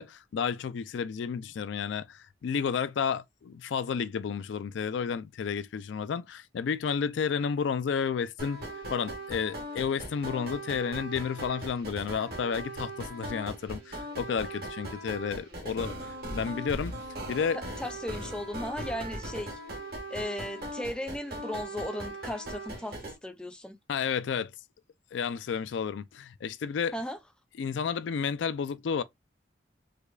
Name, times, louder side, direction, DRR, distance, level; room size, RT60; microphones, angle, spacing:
voice 1, 0.0-8.6 8.9-16.9 17.3-17.6 23.9-24.5 25.1-27.0 27.6-29.0, left 6 dB, 75° left, 0.4 m, -31 dB
sound 1, 8.4-23.2, right 1 dB, 55° right, 1.7 m, -39 dB
voice 2, 17.5-19.6 20.1-23.8 26.9-27.2, left 1 dB, 5° left, 0.5 m, -36 dB
4.9 x 2.3 x 2.3 m
head